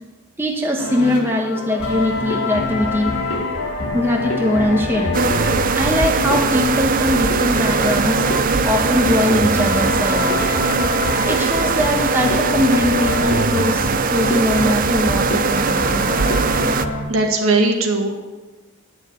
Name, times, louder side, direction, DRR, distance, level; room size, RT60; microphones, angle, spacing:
voice 1, 0.4-3.1 3.9-5.2 5.8-8.3 8.6-10.6 11.2-13.9 14.1-16.2, left 1 dB, 10° right, 0 dB, 1.1 m, -21 dB
sound 1, 0.8-17.0, left 2 dB, 85° left, 2.2 m, -25 dB
sound 2, 5.1-16.9, right 5 dB, 40° right, 0.5 m, -20 dB
voice 2, 16.5-18.2, right 2 dB, 65° right, 2 dB, 1.8 m, -20 dB
10.5 x 6.7 x 9.1 m, 1.2 s
head